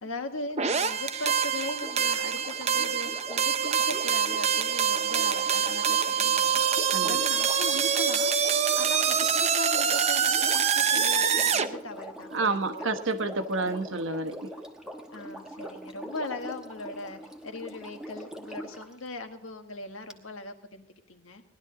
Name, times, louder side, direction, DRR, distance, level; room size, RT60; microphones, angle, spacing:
voice 1, 0.0-8.3 8.7-12.9 13.6-13.8 15.1-21.4, left 2 dB, 85° left, 6 dB, 1.6 m, -39 dB
sound 1, 0.6-11.7, right 7 dB, 30° right, 0.6 m, -25 dB
Sink (filling or washing), 1.1-18.9 20.1-20.2, equal, 5° right, 1.1 m, -43 dB
voice 2, 12.3-14.5, right 3 dB, 70° right, 6 dB, 1.2 m, -29 dB
18.5 x 12.0 x 3.9 m, 0.70 s
head